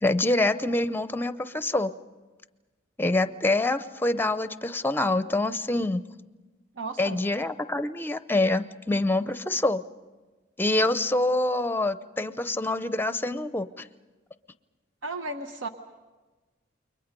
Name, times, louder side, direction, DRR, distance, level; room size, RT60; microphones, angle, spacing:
voice 1, 0.0-1.9 3.0-6.0 7.0-9.8 10.6-13.9, left 2 dB, 10° left, 12 dB, 0.6 m, -26 dB
voice 2, 6.8-7.2 15.0-15.7, right 2 dB, 75° right, 6 dB, 1.1 m, -34 dB
29.5 x 22.5 x 5.3 m, 1.3 s
head